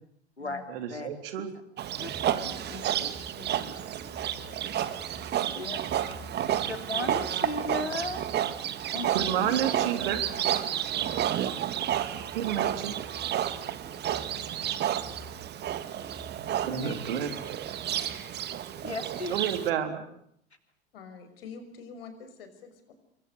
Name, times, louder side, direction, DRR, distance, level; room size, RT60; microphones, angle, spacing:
voice 1, 0.7-1.5 9.1-10.3 12.3-12.9 16.7-17.3 19.3-20.0, right 9 dB, 60° right, 8 dB, 3.9 m, -30 dB
Livestock farm animals working animals, 1.8-19.7, right 11 dB, 30° right, 2.1 m, -31 dB
voice 2, 2.0-3.1 3.4-3.7 5.5-5.8 6.5-8.2 8.9-9.5 16.7-17.0 18.8-19.4, left 2 dB, 85° left, 8 dB, 3.3 m, -37 dB
sound 1, 2.1-18.3, equal, 10° right, 7.9 m, -50 dB
voice 3, 20.9-22.9, left 6 dB, 60° left, 9 dB, 6.2 m, -45 dB
29.0 x 24.0 x 6.7 m, 0.69 s
figure-of-eight pair, 80°, 32 cm